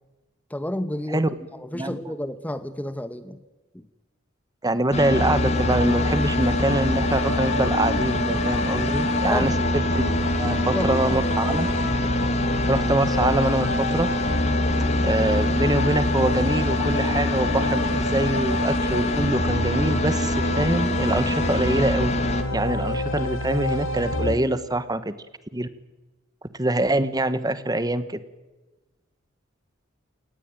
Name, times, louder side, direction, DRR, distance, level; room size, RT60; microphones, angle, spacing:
voice 1, 0.5-1.2 1.5-3.4 3.7-3.8 8.3-8.4 9.2-9.6 10.5-10.9, left 1 dB, 10° left, 12 dB, 1.0 m, -31 dB
voice 2, 4.6-11.7 12.7-14.1 15.0-22.2 22.5-25.1 25.5-25.7 26.5-28.2, right 1 dB, 20° right, 13 dB, 1.2 m, -24 dB
sound 1, 4.9-22.4, left 1 dB, 35° left, 2.1 m, -26 dB
sound 2, 5.1-24.4, left 2 dB, 75° left, 2.8 m, -27 dB
27.5 x 19.0 x 9.0 m, 1.1 s
head